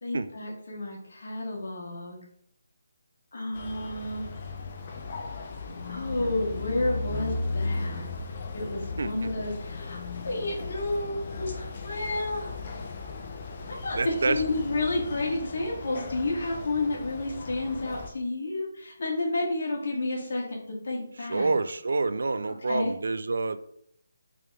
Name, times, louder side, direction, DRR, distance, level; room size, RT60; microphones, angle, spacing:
voice 1, 0.0-2.2 3.3-4.3 5.9-8.1 8.5-12.5 13.7-20.6 20.8-21.6 22.7-23.0, left 2 dB, 65° left, -1 dB, 1.3 m, -31 dB
sound 1, 3.5-18.1, left 3 dB, 35° left, 0.5 m, -36 dB
voice 2, 13.9-14.4 21.3-23.6, right 3 dB, 70° right, 12 dB, 0.3 m, -27 dB
4.8 x 3.4 x 2.3 m, 0.69 s
hypercardioid pair, 165°, 0 cm